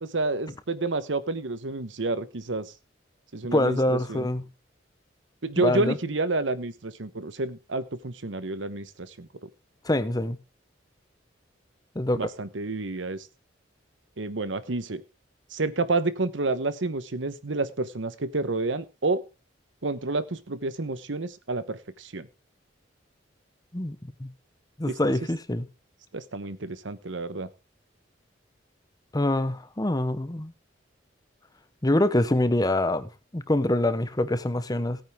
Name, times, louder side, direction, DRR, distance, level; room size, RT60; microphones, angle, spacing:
voice 1, 0.0-2.7 3.3-4.3 5.4-9.5 12.1-13.3 14.2-15.0 15.5-19.2 19.8-22.3 24.9-25.0 26.1-27.5, right 3 dB, 80° right, 1.0 m, -29 dB
voice 2, 3.5-4.4 5.6-6.0 9.8-10.4 11.9-12.3 23.7-24.3 24.8-25.7 29.1-30.5 31.8-35.0, left 1 dB, 20° left, 0.9 m, -25 dB
17.0 x 9.2 x 3.6 m
head